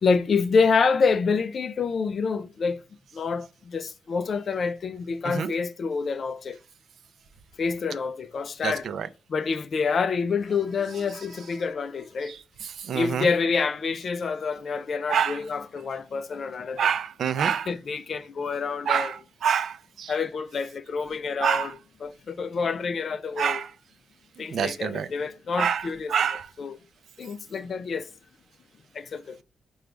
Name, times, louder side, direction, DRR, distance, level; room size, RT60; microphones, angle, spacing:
voice 1, 0.0-2.8 3.1-6.6 7.6-8.9 9.3-12.4 12.9-16.9 17.7-19.1 20.1-21.7 22.0-23.6 24.4-26.1 26.6-26.8 27.2-28.1 28.9-29.4, left 5 dB, 45° left, 0.3 m, -27 dB
voice 2, 8.6-9.1 12.6-13.3 15.1-15.4 16.8-17.7 18.9-20.1 21.4-21.7 23.4-23.7 24.5-25.1 25.6-26.5, right 7 dB, 60° right, 0.4 m, -26 dB
4.9 x 2.3 x 3.1 m
wide cardioid pair, 170°, 0 cm